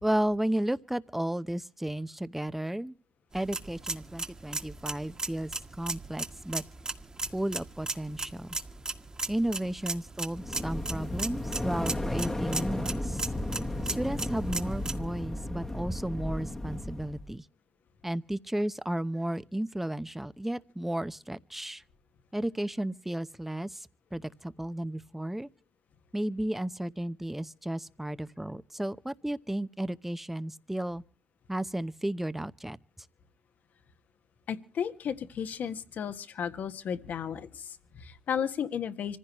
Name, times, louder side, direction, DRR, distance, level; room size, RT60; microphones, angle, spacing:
voice 1, 0.0-2.9 3.3-6.6 7.3-8.6 9.3-13.3 13.8-17.4 18.0-21.8 22.3-25.5 26.1-31.0 31.5-32.8, right 1 dB, 5° right, 0.8 m, -33 dB
sound 1, 3.3-14.9, right 3 dB, 25° right, 1.6 m, -37 dB
sound 2, 10.3-17.3, left 1 dB, 20° left, 1.3 m, -34 dB
voice 2, 34.5-39.2, left 8 dB, 65° left, 1.6 m, -34 dB
25.5 x 15.5 x 3.0 m
cardioid pair, 75°, 3 cm